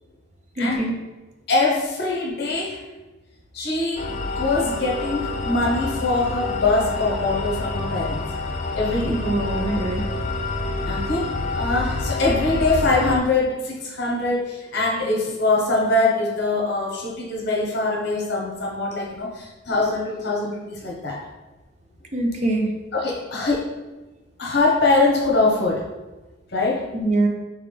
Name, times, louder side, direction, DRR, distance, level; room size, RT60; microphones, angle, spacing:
voice 1, 0.6-0.9 9.0-10.0 22.1-22.7 26.9-27.3, right 2 dB, 35° right, 2 dB, 0.5 m, -23 dB
voice 2, 1.5-2.8 3.5-8.2 8.7-9.2 10.9-21.2 22.9-23.7 24.4-25.9 26.5-26.9, left 2 dB, 55° left, -1 dB, 0.9 m, -23 dB
sound 1, 4.0-13.2, left 2 dB, 35° left, 0.3 m, -28 dB
3.9 x 3.5 x 3.3 m, 1.1 s
head